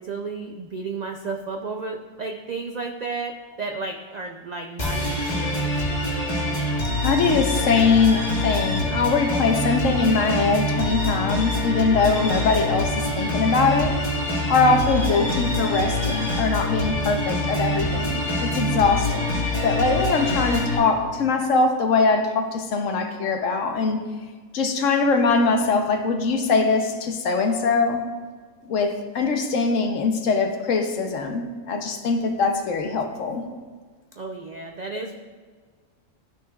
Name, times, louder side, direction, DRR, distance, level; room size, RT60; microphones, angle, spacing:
voice 1, 0.0-5.8 34.2-35.1, right 4 dB, 80° right, 3 dB, 0.3 m, -33 dB
sound 1, 4.8-20.8, left 1 dB, 35° left, 1.6 m, -25 dB
voice 2, 7.0-14.0 14.5-24.0 24.5-28.0 28.6-33.4, left 4 dB, 70° left, 5 dB, 1.1 m, -22 dB
12.5 x 6.2 x 2.3 m, 1.5 s
omnidirectional pair, 1.4 m